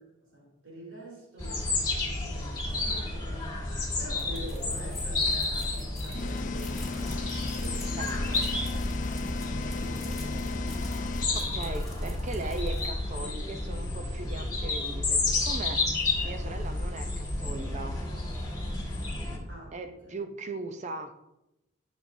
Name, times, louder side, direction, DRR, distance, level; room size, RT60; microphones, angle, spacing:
voice 1, 0.2-10.7 11.2-11.8 19.5-20.2, equal, 80° right, 3.2 m, -47 dB
sound 1, 1.4-19.4, left 2 dB, 20° left, 1.6 m, -31 dB
sound 2, 4.0-13.3, left 1 dB, ahead, 1.8 m, -45 dB
sound 3, 6.1-11.3, left 4 dB, 40° left, 0.4 m, -36 dB
voice 2, 11.3-15.9 16.2-18.0 19.7-21.2, right 2 dB, 35° right, 0.6 m, -39 dB
12.0 x 6.2 x 2.7 m
head